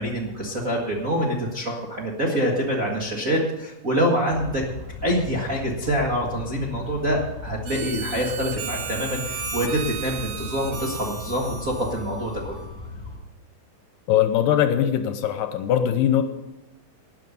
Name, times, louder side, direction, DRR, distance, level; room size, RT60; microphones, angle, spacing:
voice 1, 0.0-4.6 5.0-12.6, equal, 40° right, -2 dB, 1.2 m, -25 dB
sound 1, 4.3-13.2, left 3 dB, 15° left, 2.9 m, -38 dB
Harmonica, 7.7-12.8, right 5 dB, 80° right, 3.2 m, -35 dB
voice 2, 14.1-16.2, left 10 dB, 75° left, 8 dB, 2.4 m, -21 dB
12.5 x 9.2 x 6.8 m, 0.93 s
omnidirectional pair, 4.1 m